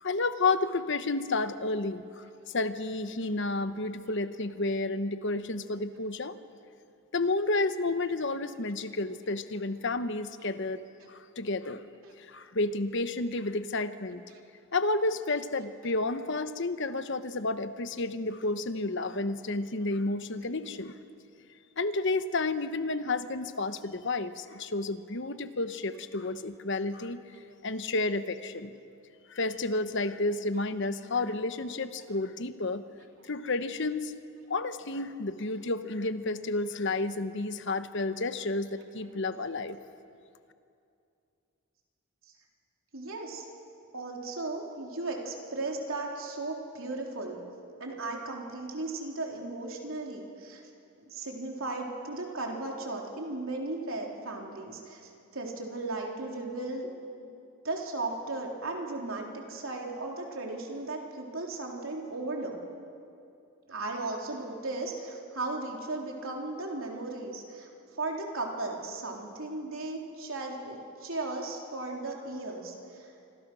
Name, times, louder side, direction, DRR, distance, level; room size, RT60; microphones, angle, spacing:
voice 1, 0.0-2.2 2.5-6.4 7.1-10.8 11.1-11.9 12.3-14.2 14.7-21.0 21.8-27.2 27.6-28.7 29.3-32.8 33.2-34.1 34.5-39.8, left 2 dB, 55° left, 11 dB, 1.0 m, -31 dB
voice 2, 42.9-43.4 43.9-47.4 47.8-50.6 51.1-56.9 57.2-57.3 57.6-62.6 63.7-67.7 68.0-73.1, right 2 dB, 65° right, 0 dB, 3.7 m, -36 dB
26.0 x 25.5 x 6.3 m, 2.5 s
head